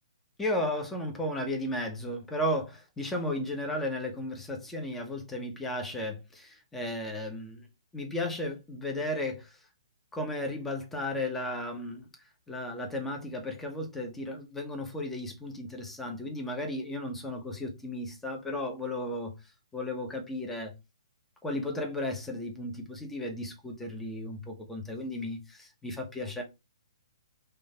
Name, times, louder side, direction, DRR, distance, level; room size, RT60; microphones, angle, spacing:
voice 1, 0.4-7.7 7.9-9.6 10.1-12.1 12.5-20.7 21.4-26.4, left 1 dB, 10° left, 1.1 m, -34 dB
5.1 x 2.8 x 3.4 m
figure-of-eight pair, 125°, 3 cm